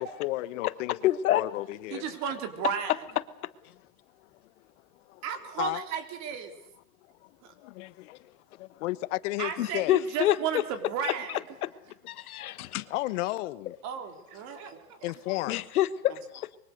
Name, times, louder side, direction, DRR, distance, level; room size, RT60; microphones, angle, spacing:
voice 1, 0.2-1.0 1.3-2.2 5.1-5.2 5.6-5.8 7.2-9.9 12.4-13.7 14.5-14.6 15.0-15.6, left 18 dB, 60° left, 1.2 m, -34 dB
voice 2, 1.0-1.4 3.6-3.7 9.6-10.6 11.0-11.7 12.1-12.9 15.5-16.6, left 13 dB, 85° left, 1.4 m, -28 dB
voice 3, 1.9-2.9 5.2-6.5 7.4-7.5 9.4-11.4 13.8-15.0, right 8 dB, 40° right, 3.6 m, -34 dB
25.0 x 23.0 x 6.7 m
supercardioid pair, 150°, 42 cm